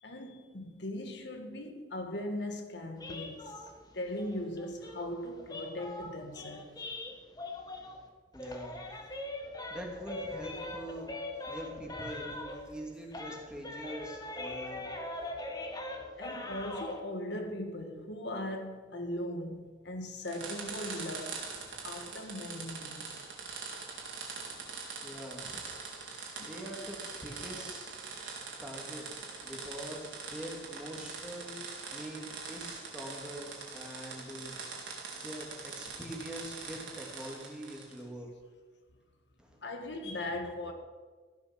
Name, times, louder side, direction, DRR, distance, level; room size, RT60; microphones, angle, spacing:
voice 1, 0.0-3.5 3.9-6.8 16.2-21.4 21.8-23.2 39.6-40.7, left 1 dB, 65° left, 1.7 m, -39 dB
sound 1, 3.0-8.1 8.3-12.8 13.1-17.0, left 2 dB, 20° left, 1.6 m, -42 dB
voice 2, 8.3-8.8 9.7-11.1 11.5-14.9 21.7-22.0 25.0-25.7 26.4-28.0 28.6-29.0 29.4-31.6 31.9-34.6 35.1-38.3 39.4-39.6, equal, 5° right, 2.6 m, -44 dB
sound 2, 20.2-38.0, right 4 dB, 85° right, 3.7 m, -43 dB
16.0 x 12.0 x 6.0 m
head